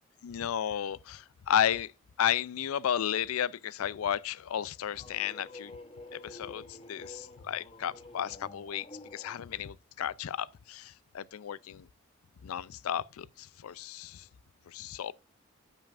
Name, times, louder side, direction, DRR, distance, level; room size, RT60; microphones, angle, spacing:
voice 1, 0.2-1.9 2.2-5.7 6.1-8.9 9.1-11.9 12.4-14.3 14.7-15.1, left 9 dB, 85° left, 0.4 m, -33 dB
sound 1, 4.5-9.4, left 2 dB, 25° left, 0.9 m, -49 dB
13.5 x 5.6 x 2.5 m
head